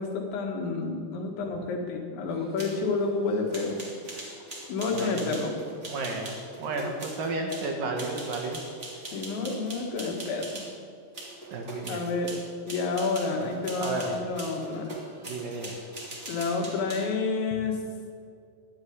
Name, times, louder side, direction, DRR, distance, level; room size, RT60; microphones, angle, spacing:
voice 1, 0.0-3.8 4.7-5.6 9.1-10.6 11.9-12.4 12.7-14.9 16.3-17.8, left 4 dB, 70° left, 2 dB, 4.0 m, -29 dB
sound 1, 2.3-10.7 11.1-17.1, right 1 dB, 25° right, 1.4 m, -42 dB
voice 2, 4.9-5.3 5.9-6.3 6.6-8.6 11.5-12.0 13.2-13.5 13.8-14.2 15.3-15.8, right 3 dB, 65° right, 2 dB, 2.2 m, -32 dB
12.5 x 11.0 x 9.6 m, 2.2 s
omnidirectional pair, 5.8 m